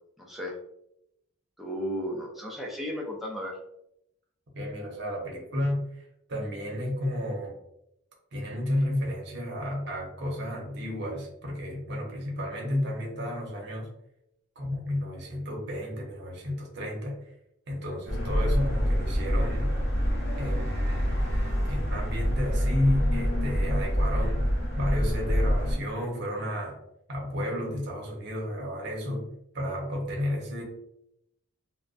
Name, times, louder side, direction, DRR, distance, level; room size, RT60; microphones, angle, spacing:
voice 1, 0.2-0.5 1.6-3.6, equal, ahead, -2 dB, 0.4 m, -34 dB
voice 2, 4.5-7.5 8.3-13.9 14.6-17.3 17.7-19.7 20.4-21.2 21.6-26.8 27.1-29.3 29.5-30.6, left 1 dB, 55° right, -1 dB, 0.7 m, -32 dB
sound 1, 18.1-25.8, equal, 60° left, 1.0 m, -26 dB
2.4 x 2.1 x 2.4 m, 0.79 s
head